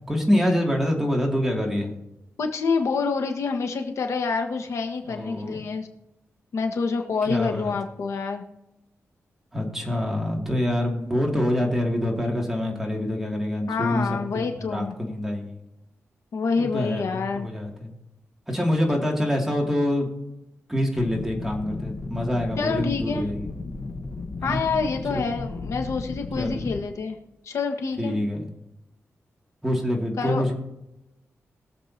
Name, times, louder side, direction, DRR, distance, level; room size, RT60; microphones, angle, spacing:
voice 1, 0.0-1.9 5.0-5.6 7.2-7.7 9.5-15.6 16.6-17.9 18.5-20.1 20.7-23.5 24.4-24.6 25.1-25.2 26.4-26.6 28.0-28.5 29.6-30.5, left 1 dB, 5° right, -1 dB, 2.5 m, -26 dB
voice 2, 2.4-5.9 6.5-8.4 13.7-14.9 16.3-17.5 22.6-23.3 24.4-27.2 27.4-28.1 30.2-30.4, left 4 dB, 70° left, 5 dB, 1.4 m, -27 dB
sound 1, 21.0-26.8, left 3 dB, 45° left, 1.5 m, -34 dB
22.0 x 7.4 x 2.9 m, 0.92 s
wide cardioid pair, 130°, 5 cm